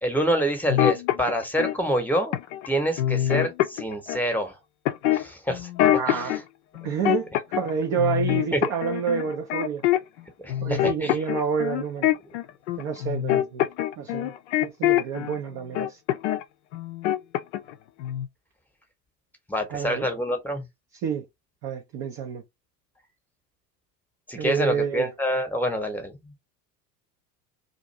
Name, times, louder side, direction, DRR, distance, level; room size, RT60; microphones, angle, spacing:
voice 1, 0.0-2.4 2.7-4.6 5.1-5.7 6.1-6.4 8.5-8.6 10.4-11.2 19.5-20.7 24.3-26.3, equal, 5° left, 0.9 m, -27 dB
sound 1, 0.7-1.7 2.3-2.7 3.0-4.2 4.8-6.4 6.7-7.7 8.0-10.2 10.5-15.4 15.7-16.4 16.7-17.7 18.0-18.3, left 12 dB, 45° left, 0.5 m, -24 dB
voice 2, 6.0-6.4 6.8-9.8 10.6-12.1 12.8-13.6 14.0-14.3 14.6-16.0 19.7-20.1 21.0-21.3 21.6-22.4 24.3-25.1, right 7 dB, 25° right, 0.4 m, -28 dB
2.5 x 2.5 x 4.1 m
figure-of-eight pair, 80°, 49 cm